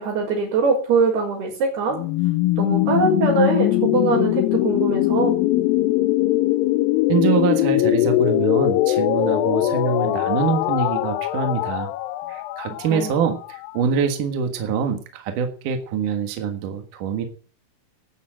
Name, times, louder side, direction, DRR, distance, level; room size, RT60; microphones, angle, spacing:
voice 1, 0.0-2.0 2.6-5.4 12.9-13.1, right 4 dB, 75° right, -7 dB, 6.5 m, -22 dB
sound 1, 1.9-13.7, left 15 dB, 75° left, 2.3 m, -21 dB
voice 2, 7.1-11.9 12.3-17.3, right 6 dB, 60° right, 6 dB, 2.8 m, -24 dB
13.0 x 8.5 x 7.6 m, 0.42 s
omnidirectional pair, 4.6 m